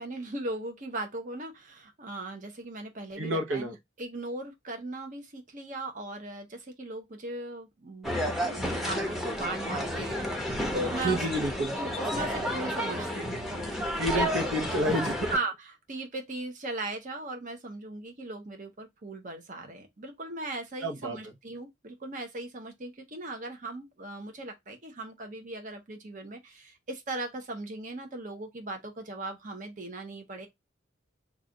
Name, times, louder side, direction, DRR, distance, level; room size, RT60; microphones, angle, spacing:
voice 1, 0.0-11.2 11.7-13.4 14.1-14.5 15.3-30.5, right 2 dB, 45° right, 0.9 m, -38 dB
voice 2, 3.1-3.7 11.0-11.7 14.0-15.2 20.8-21.2, right 1 dB, 80° right, 0.8 m, -29 dB
sound 1, 8.0-15.4, equal, ahead, 0.7 m, -31 dB
3.2 x 2.4 x 3.8 m
head